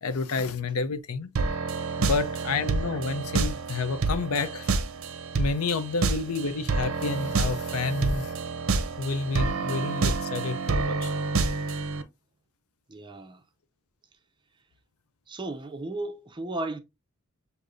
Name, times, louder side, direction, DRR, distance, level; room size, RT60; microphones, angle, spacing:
voice 1, 0.0-1.3 2.0-4.7 5.4-8.3 9.0-11.1, left 4 dB, 80° left, 0.6 m, -29 dB
sound 1, 1.4-12.0, right 3 dB, 65° right, 0.6 m, -28 dB
voice 2, 12.9-13.4 15.3-16.8, right 2 dB, 20° right, 0.5 m, -35 dB
6.4 x 2.7 x 2.5 m
head